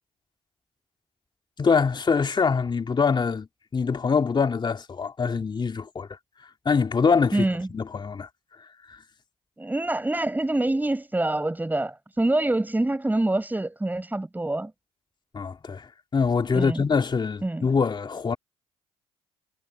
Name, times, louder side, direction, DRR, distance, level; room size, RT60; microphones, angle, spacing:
voice 1, 1.6-3.5 3.7-6.1 6.7-8.3 8.9-9.0 15.3-18.4, left 5 dB, 35° left, 2.3 m, -24 dB
voice 2, 7.3-7.7 9.6-14.7 16.5-16.8 17.4-17.7, right 2 dB, 15° right, 6.6 m, -26 dB
hypercardioid pair, 55°, 13 cm